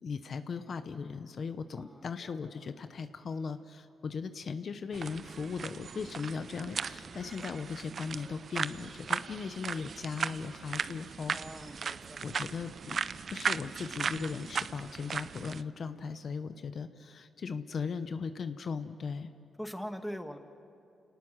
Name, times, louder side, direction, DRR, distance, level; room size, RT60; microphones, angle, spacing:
voice 1, 0.0-11.4 11.8-11.9 12.2-13.0 13.3-19.3, left 5 dB, 60° left, 10 dB, 0.9 m, -38 dB
voice 2, 1.7-2.3 11.3-12.4 15.9-16.1 19.6-20.4, equal, ahead, 7 dB, 1.6 m, -42 dB
sound 1, 4.9-15.6, right 6 dB, 60° right, 0.5 m, -37 dB
29.0 x 18.5 x 6.4 m, 2.7 s
cardioid pair, 65°, 0 cm